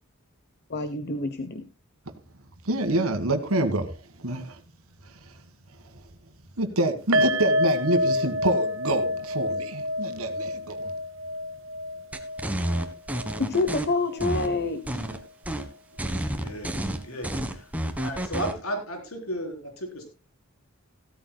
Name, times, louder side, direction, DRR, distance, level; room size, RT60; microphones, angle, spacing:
voice 1, 0.7-1.6 13.4-15.0, left 3 dB, 50° left, 12 dB, 0.9 m, -27 dB
voice 2, 2.6-4.6 5.0-5.3 5.9-6.0 6.6-10.9, right 1 dB, 80° right, 8 dB, 1.7 m, -27 dB
sound 1, 7.1-14.3 14.6-14.8 15.2-15.3, left 1 dB, 60° right, 0.8 m, -28 dB
sound 2, 12.1-13.8 14.2-15.2 15.4-15.7 16.0-18.5, right 1 dB, 5° right, 1.3 m, -30 dB
voice 3, 16.0-17.7 18.0-20.0, equal, 85° left, 4 dB, 3.9 m, -35 dB
16.0 x 13.5 x 2.2 m, 0.30 s
head